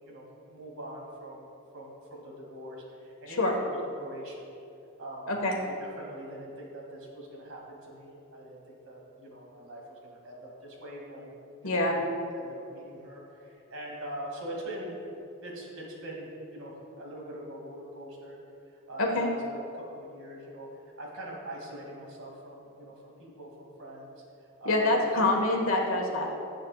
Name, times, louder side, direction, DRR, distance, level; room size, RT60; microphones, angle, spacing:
voice 1, 0.0-1.5 1.7-4.5 5.0-15.0 15.4-18.4 18.7-24.8 25.1-25.4, right 1 dB, 75° right, -2 dB, 2.5 m, -43 dB
voice 2, 11.6-12.0 19.0-19.3 24.6-26.3, left 2 dB, 75° left, 1 dB, 1.5 m, -26 dB
19.5 x 7.7 x 2.4 m, 2.8 s
head